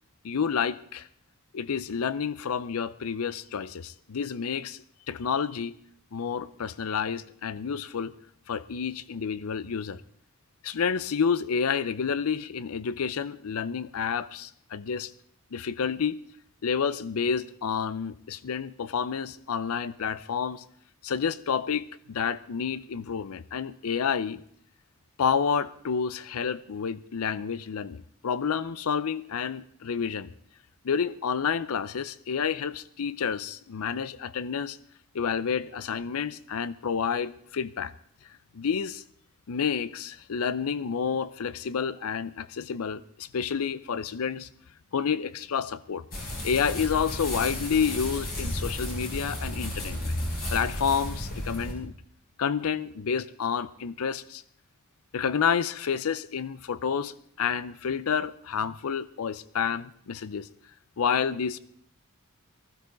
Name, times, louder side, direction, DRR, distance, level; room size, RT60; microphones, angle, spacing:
voice 1, 0.2-1.1 1.5-5.8 6.1-8.1 8.5-10.0 10.6-15.1 15.5-16.2 16.6-20.6 21.0-24.4 25.2-30.3 30.8-34.8 35.1-37.9 38.5-39.0 39.5-44.5 44.9-50.2 50.5-51.9 52.4-54.4 55.1-60.5 61.0-61.6, left 6 dB, 70° left, 17 dB, 0.5 m, -29 dB
sound 1, 46.1-51.7, left 1 dB, 45° left, 5.0 m, -33 dB
19.5 x 15.5 x 3.8 m, 0.65 s
head